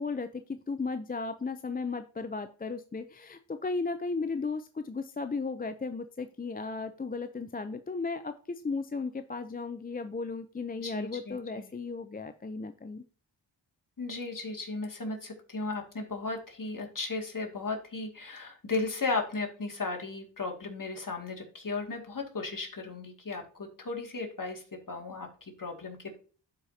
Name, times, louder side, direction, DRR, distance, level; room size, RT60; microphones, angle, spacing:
voice 1, 0.0-13.0, left 4 dB, 20° left, 9 dB, 0.5 m, -35 dB
voice 2, 10.8-11.7 14.0-26.2, left 3 dB, 45° left, 2 dB, 2.2 m, -35 dB
12.0 x 4.9 x 2.8 m, 0.39 s
cardioid pair, 50°, 46 cm